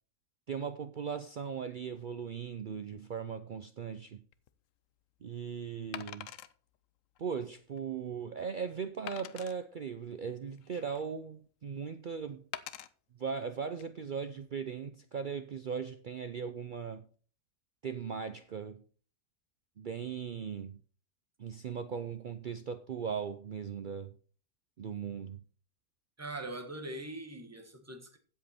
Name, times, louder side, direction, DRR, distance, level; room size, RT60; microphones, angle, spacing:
voice 1, 0.5-4.2 5.2-6.3 7.2-12.4 13.2-17.1 17.8-18.8 19.8-20.8 21.4-24.2 24.8-25.4, right 6 dB, 85° right, 0.4 m, -38 dB
Wood, 4.3-4.5 5.9-6.5 7.2-7.3 7.8-7.9 9.1-9.6 10.3-11.1 12.5-12.9 13.6-13.8, left 11 dB, 65° left, 0.9 m, -44 dB
voice 2, 26.2-28.2, right 2 dB, 10° right, 1.2 m, -42 dB
15.5 x 5.3 x 4.3 m
omnidirectional pair, 1.7 m